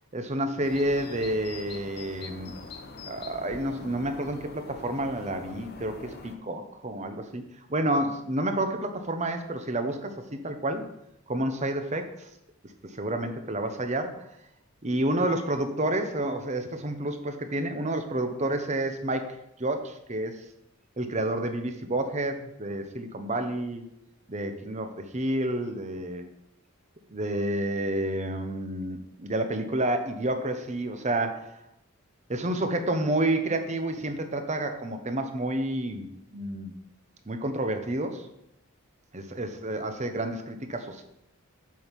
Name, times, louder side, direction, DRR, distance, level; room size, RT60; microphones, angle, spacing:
voice 1, 0.1-2.5 3.1-7.4 7.7-10.8 11.3-12.3 12.8-14.3 14.8-20.4 21.0-23.8 24.3-26.3 27.1-31.6 32.3-36.7 37.3-38.3 39.1-41.0, right 1 dB, 30° right, 7 dB, 0.9 m, -30 dB
sound 1, 0.6-6.4, left 3 dB, 45° left, 0.9 m, -43 dB
7.7 x 5.3 x 5.8 m, 0.82 s
head